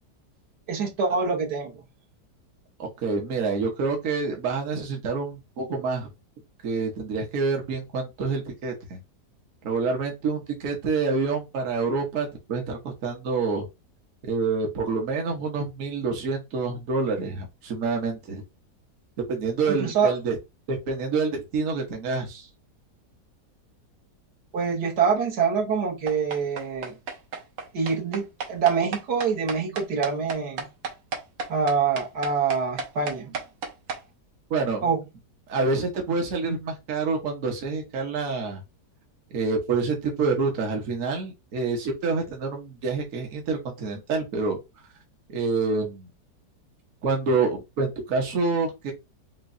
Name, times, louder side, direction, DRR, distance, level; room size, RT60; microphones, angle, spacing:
voice 1, 0.7-1.8 19.7-20.1 24.5-27.0 27.7-30.7 31.5-33.3 34.8-35.0, right 5 dB, 75° right, 1.8 m, -25 dB
voice 2, 2.8-6.1 6.6-9.0 9.6-13.7 14.2-18.4 19.3-20.4 20.7-22.5 34.5-34.9 35.5-38.6 39.3-44.6 45.3-46.1 47.0-48.9, right 4 dB, 55° right, 1.3 m, -27 dB
sound 1, 26.1-34.0, right 4 dB, 90° right, 1.5 m, -32 dB
5.9 x 2.3 x 2.5 m
omnidirectional pair, 1.8 m